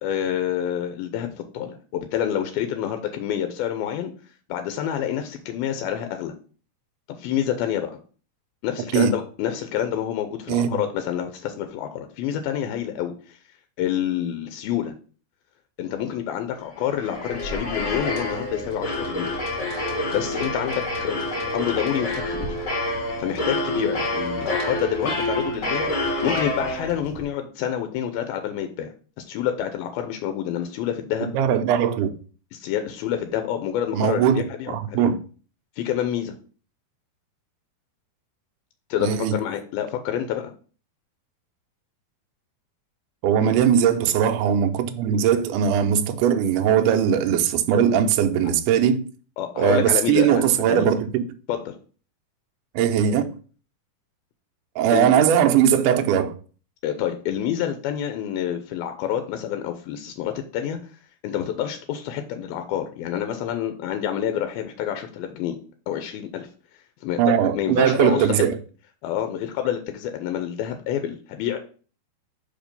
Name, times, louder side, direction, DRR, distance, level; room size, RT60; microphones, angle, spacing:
voice 1, 0.0-1.3 1.5-4.1 4.5-6.3 7.2-7.9 8.6-13.4 13.8-14.9 15.8-19.3 20.1-22.6 23.2-25.9 26.2-28.9 29.3-31.3 32.5-35.1 35.8-36.4 38.9-40.5 43.4-43.6 49.4-50.9 51.5-51.7 54.9-55.1 56.8-60.8 61.2-65.6 65.9-66.5 67.0-68.4 69.0-71.6, left 10 dB, 85° left, 2.5 m, -28 dB
voice 2, 10.5-10.8 31.2-32.2 33.9-35.2 39.0-39.4 43.2-49.0 49.6-51.2 52.8-53.3 54.8-56.4 67.2-68.6, right 9 dB, 85° right, 1.9 m, -20 dB
sound 1, 16.8-27.2, left 1 dB, 40° left, 1.7 m, -28 dB
5.3 x 5.1 x 5.3 m
omnidirectional pair, 4.3 m